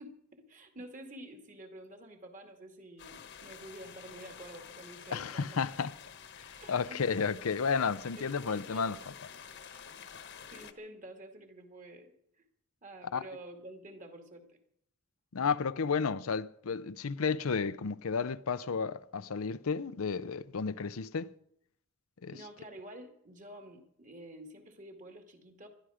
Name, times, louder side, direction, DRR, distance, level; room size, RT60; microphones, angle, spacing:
voice 1, 0.0-5.6 6.6-7.2 8.2-9.1 10.5-12.1 12.4-12.5 12.8-14.6 22.2-25.7, right 1 dB, 40° right, 2.3 m, -49 dB
sound 1, 3.0-10.7, left 7 dB, 55° left, 1.2 m, -50 dB
voice 2, 5.1-5.9 6.4-9.0 13.1-13.2 15.3-21.3 22.2-22.4, left 5 dB, 90° left, 0.6 m, -32 dB
20.5 x 12.5 x 5.0 m
head